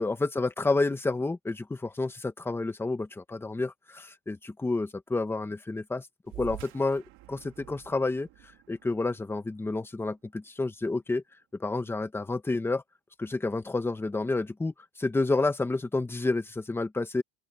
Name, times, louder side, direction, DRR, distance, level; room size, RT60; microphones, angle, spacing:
voice 1, 0.0-6.1 6.3-8.3 8.7-11.2 11.6-12.8 13.2-17.2, left 3 dB, 5° left, 1.3 m, -30 dB
sound 1, 6.2-11.1, right 17 dB, 60° right, 3.5 m, -49 dB
open air
cardioid pair, 160°, 31 cm